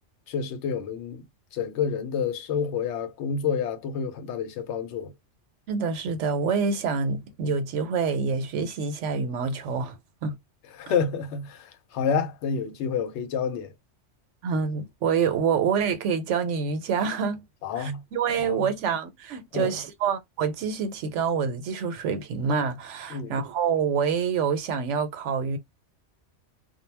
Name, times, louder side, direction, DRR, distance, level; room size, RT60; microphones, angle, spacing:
voice 1, 0.3-1.2 1.5-5.1 10.8-13.7 17.6-18.0 18.5-18.7 19.5-19.7 23.1-23.4, left 6 dB, 75° left, 0.9 m, -29 dB
voice 2, 5.7-10.0 10.2-10.4 14.4-17.4 17.8-25.6, right 6 dB, 85° right, 1.0 m, -27 dB
2.2 x 2.0 x 3.2 m
omnidirectional pair, 1.2 m